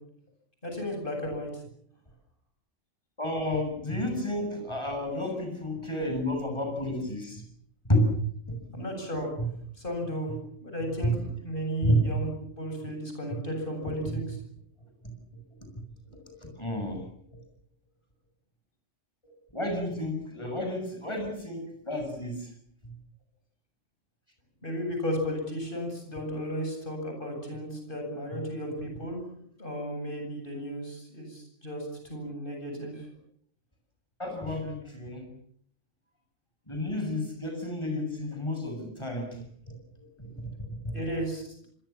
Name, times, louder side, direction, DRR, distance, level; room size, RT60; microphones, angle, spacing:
voice 1, 0.6-1.5 8.7-9.3 9.8-10.3 10.6-12.3 12.6-14.2 24.6-29.2 29.6-33.1 40.9-41.7, equal, 45° left, 3 dB, 8.4 m, -34 dB
voice 2, 3.2-7.4 7.9-8.1 8.5-8.9 9.4-9.5 11.0-11.1 11.8-12.0 14.1-14.2 16.2-17.1 19.2-22.5 34.2-35.3 36.7-41.0, equal, 25° left, 4 dB, 7.9 m, -31 dB
27.0 x 23.5 x 7.3 m, 0.67 s
omnidirectional pair, 1.2 m